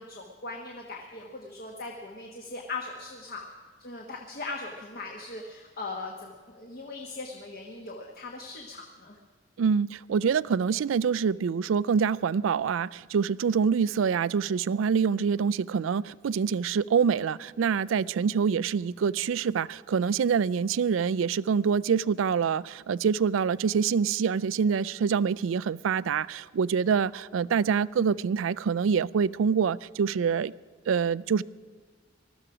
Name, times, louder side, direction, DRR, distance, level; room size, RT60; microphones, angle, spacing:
voice 1, 0.0-3.5 3.8-9.2, left 3 dB, 50° left, 1 dB, 1.3 m, -39 dB
voice 2, 9.6-30.5 30.9-31.4, right 6 dB, 80° right, 20 dB, 0.4 m, -26 dB
20.0 x 13.5 x 4.9 m, 1.5 s
head